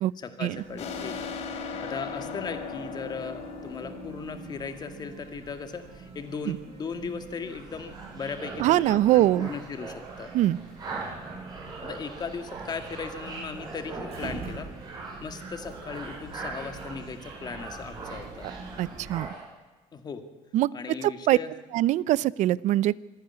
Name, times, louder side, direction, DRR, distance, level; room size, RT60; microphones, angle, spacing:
voice 1, 0.2-1.3 1.8-10.3 11.8-14.7 15.2-18.5 19.9-20.2 20.7-21.5, left 5 dB, 30° left, 8 dB, 2.1 m, -37 dB
sound 1, 0.6-19.2, right 4 dB, 50° right, 7.7 m, -46 dB
sound 2, 0.8-6.1, left 5 dB, 55° left, 3.3 m, -38 dB
sound 3, 7.5-19.5, right 3 dB, 30° right, 7.2 m, -41 dB
voice 2, 8.6-9.5 10.3-10.6 18.8-19.3 20.5-21.4 21.7-23.0, right 14 dB, 65° right, 21 dB, 0.6 m, -23 dB
26.0 x 10.5 x 9.9 m, 1.2 s
cardioid pair, 145°, 13 cm